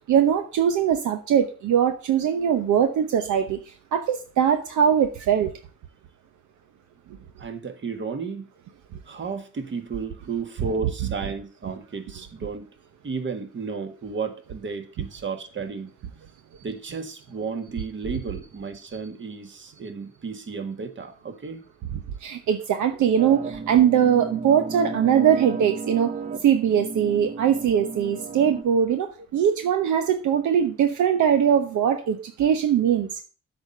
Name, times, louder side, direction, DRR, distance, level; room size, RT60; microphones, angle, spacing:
voice 1, 0.1-3.6 3.9-5.5 22.2-26.1 26.4-33.2, right 8 dB, 75° right, 0.9 m, -21 dB
voice 2, 7.4-8.4 9.1-12.7 13.0-15.9 16.6-21.6, right 5 dB, 40° right, 1.5 m, -33 dB
sound 1, 23.2-28.6, right 4 dB, 25° right, 0.8 m, -34 dB
7.9 x 4.3 x 6.5 m
cardioid pair, 90°, 30 cm